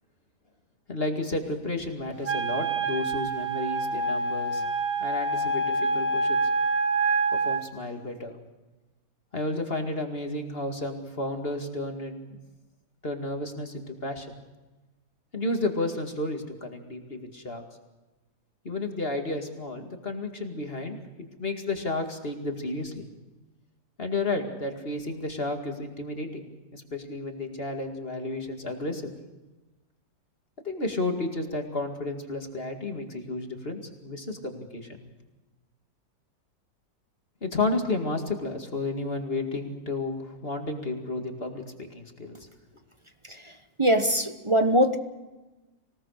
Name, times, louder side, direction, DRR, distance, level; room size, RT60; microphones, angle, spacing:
voice 1, 0.9-4.6 5.0-6.4 7.3-8.4 9.3-12.4 13.0-14.3 15.3-17.6 18.6-23.1 24.0-26.4 26.7-29.1 30.6-35.1 37.4-42.4, left 2 dB, 30° left, 4 dB, 2.3 m, -32 dB
Wind instrument woodwind instrument, 2.2-7.6, right 3 dB, 50° right, 2.1 m, -26 dB
voice 2, 43.8-45.0, equal, 20° right, 8 dB, 0.8 m, -21 dB
25.5 x 18.0 x 6.6 m, 1.1 s
omnidirectional pair, 2.0 m